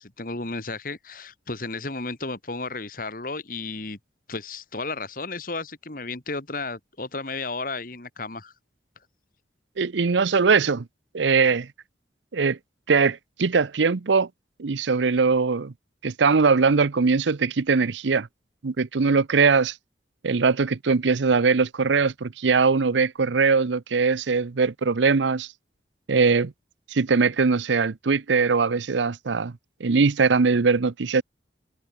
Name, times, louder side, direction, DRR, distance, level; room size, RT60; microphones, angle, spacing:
voice 1, 0.0-4.0 4.3-8.5, left 3 dB, 50° left, 1.9 m, -33 dB
voice 2, 9.8-10.8 11.1-11.7 12.3-12.6 12.9-14.3 14.6-15.7 16.0-18.3 18.6-19.7 20.2-25.5 26.1-26.5 26.9-29.5 29.8-31.2, right 4 dB, 85° right, 0.7 m, -21 dB
head